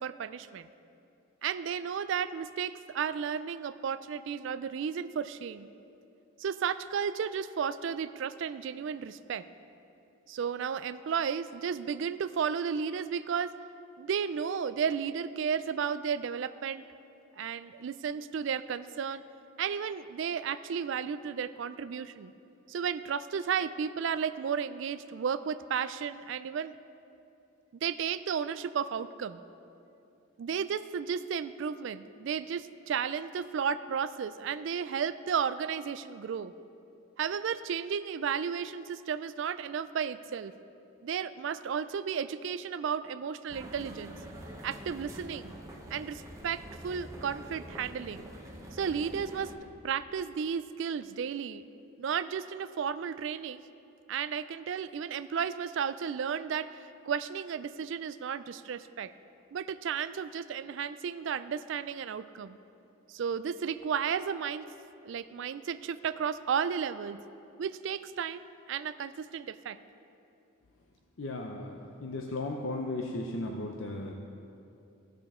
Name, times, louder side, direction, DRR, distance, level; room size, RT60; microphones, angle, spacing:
voice 1, 0.0-0.7 1.4-5.7 6.4-9.4 10.3-13.5 14.0-16.8 17.4-19.2 19.6-22.3 22.7-26.7 27.8-29.4 30.4-36.5 37.2-40.5 41.0-44.2 44.6-45.6 45.9-48.3 48.7-49.5 49.8-51.6 52.0-53.6 54.1-59.1 59.5-62.6 63.1-64.7 65.0-67.2 67.6-68.4 68.7-69.8, right 7 dB, 60° right, 14 dB, 0.3 m, -33 dB
sound 1, 43.5-49.5, equal, 15° right, 0.8 m, -46 dB
voice 2, 71.2-74.1, left 2 dB, 65° left, 1 dB, 0.6 m, -36 dB
16.0 x 6.7 x 3.7 m, 2.7 s
head